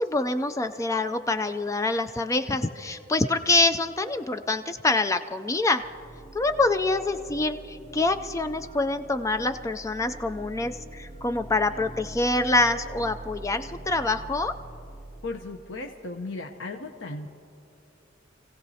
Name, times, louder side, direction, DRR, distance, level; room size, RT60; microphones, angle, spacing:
voice 1, 0.0-5.8 6.3-14.6, left 2 dB, 15° left, 9 dB, 0.4 m, -26 dB
sound 1, 5.8-15.6, right 2 dB, 35° right, 2.0 m, -44 dB
voice 2, 15.2-17.3, left 2 dB, 70° left, 3 dB, 0.8 m, -36 dB
28.5 x 16.5 x 2.8 m, 2.8 s
head